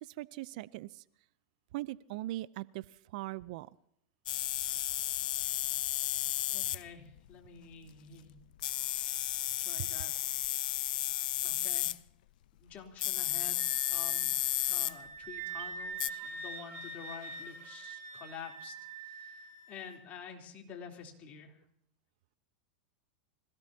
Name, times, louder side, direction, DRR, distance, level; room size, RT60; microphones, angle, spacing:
voice 1, 0.0-1.0 1.7-2.8 3.1-3.7 9.8-9.9 15.4-15.5, right 17 dB, 60° right, 19 dB, 0.5 m, -40 dB
sound 1, 4.3-6.8 7.2-7.3 8.6-12.0 13.0-14.9 16.0-16.1, left 15 dB, 70° left, 0.5 m, -33 dB
voice 2, 6.5-8.4 9.6-10.1 11.4-12.0 12.6-14.3 14.7-21.6, left 6 dB, 35° left, 2 dB, 3.5 m, -49 dB
Wind instrument woodwind instrument, 13.6-20.0, right 4 dB, 45° right, 4.9 m, -44 dB
26.0 x 17.0 x 2.9 m, 0.73 s
hypercardioid pair, 125°, 5 cm